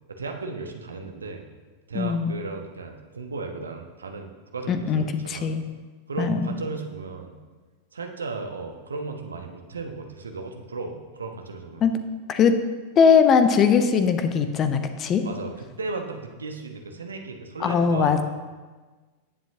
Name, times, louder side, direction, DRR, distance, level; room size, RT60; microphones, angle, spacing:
voice 1, 0.1-1.4 1.9-5.5 6.1-7.4 7.9-11.8 15.2-18.2, right 4 dB, 75° right, 4 dB, 1.1 m, -35 dB
voice 2, 1.9-2.3 4.7-5.6 6.2-6.5 11.8-12.0 12.3-12.6 13.0-15.2 17.6-18.2, left 6 dB, 30° left, 9 dB, 0.8 m, -20 dB
18.5 x 7.4 x 2.8 m, 1.3 s
figure-of-eight pair, 90°, 0 cm